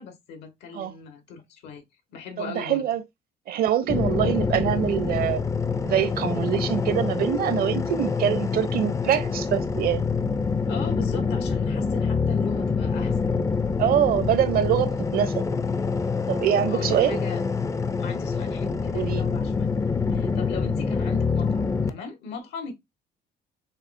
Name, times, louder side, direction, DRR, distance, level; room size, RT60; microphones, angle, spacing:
voice 1, 0.0-1.8 2.1-2.9 10.7-13.4 16.6-17.4 17.7-19.7 20.1-22.7, left 5 dB, 85° left, 1.6 m, -38 dB
voice 2, 2.4-3.0 3.5-5.4 5.8-10.0 13.8-15.4 16.3-17.2 18.9-19.2, right 10 dB, 60° right, 0.7 m, -24 dB
sound 1, 3.9-21.9, left 5 dB, 20° left, 0.4 m, -26 dB
6.5 x 2.3 x 2.6 m
cardioid pair, 110°, 17 cm